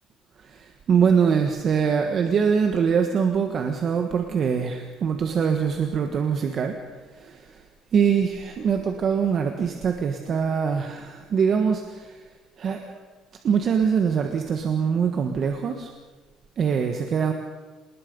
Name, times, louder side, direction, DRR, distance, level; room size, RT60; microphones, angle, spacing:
voice 1, 0.4-6.8 7.1-7.6 7.9-12.2 12.6-13.0 13.4-15.9 16.6-17.3, right 6 dB, 40° right, 5 dB, 1.5 m, -23 dB
26.0 x 20.0 x 5.4 m, 1.3 s
cardioid pair, 160°, 0 cm